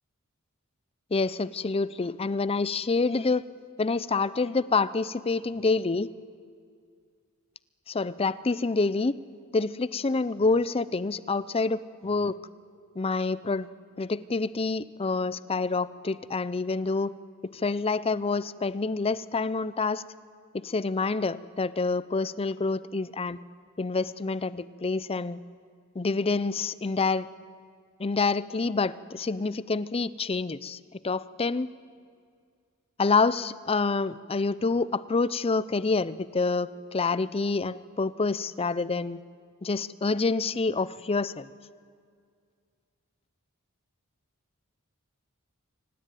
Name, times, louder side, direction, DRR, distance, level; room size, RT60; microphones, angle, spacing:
voice 1, 1.1-3.5 3.8-6.1 7.9-9.1 9.5-12.3 13.0-13.7 14.0-17.1 17.4-20.0 20.5-23.4 23.8-25.4 25.9-27.3 28.0-31.7 33.0-39.2 39.6-41.5, left 3 dB, 25° left, 17 dB, 0.5 m, -27 dB
24.5 x 18.0 x 9.2 m, 2.2 s
head